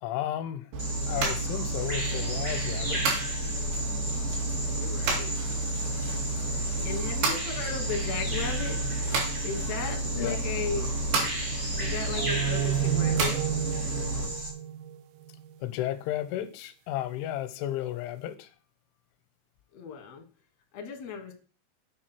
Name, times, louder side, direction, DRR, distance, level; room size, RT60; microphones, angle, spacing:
voice 1, 0.0-3.3 6.3-6.5 6.8-6.9 10.2-10.5 15.6-18.5, left 12 dB, 90° left, 3.2 m, -34 dB
sound 1, 0.7-14.3, right 2 dB, 65° right, 4.3 m, -31 dB
Bird vocalization bird call bird song, 0.8-14.5, right 1 dB, 40° right, 0.6 m, -36 dB
voice 2, 4.7-5.3 6.8-8.8 9.4-10.9 11.8-13.4 19.7-20.3 20.7-21.3, left 6 dB, 70° left, 1.6 m, -36 dB
sound 2, 12.2-15.6, right 11 dB, 85° right, 2.4 m, -31 dB
8.5 x 4.7 x 5.9 m
omnidirectional pair, 5.4 m